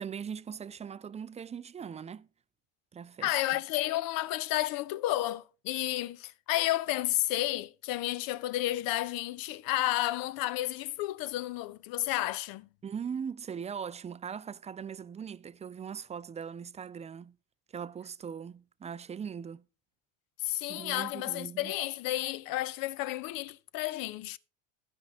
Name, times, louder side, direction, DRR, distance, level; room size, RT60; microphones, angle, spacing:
voice 1, 0.0-2.3 2.9-3.4 12.8-17.4 17.7-19.6 20.7-21.7, right 7 dB, 15° right, 0.4 m, -40 dB
voice 2, 3.2-12.7 20.4-24.4, left 16 dB, 55° left, 0.8 m, -31 dB
12.0 x 9.8 x 3.6 m
hypercardioid pair, 90°, 41 cm